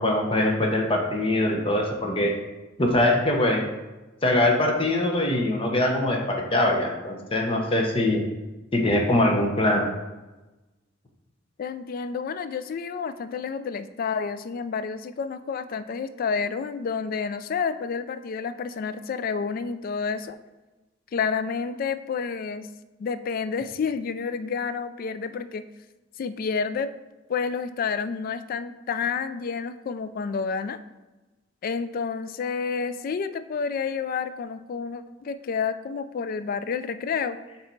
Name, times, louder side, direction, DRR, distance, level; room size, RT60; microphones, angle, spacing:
voice 1, 0.0-2.3 2.8-3.6 4.2-8.2 8.7-9.8, left 1 dB, 30° left, 1 dB, 0.8 m, -22 dB
voice 2, 11.6-20.4 21.1-22.7 23.0-25.7 26.2-26.9 27.3-30.8 31.6-37.4, left 5 dB, 50° left, 12 dB, 0.3 m, -29 dB
6.4 x 3.4 x 4.4 m, 1.1 s
head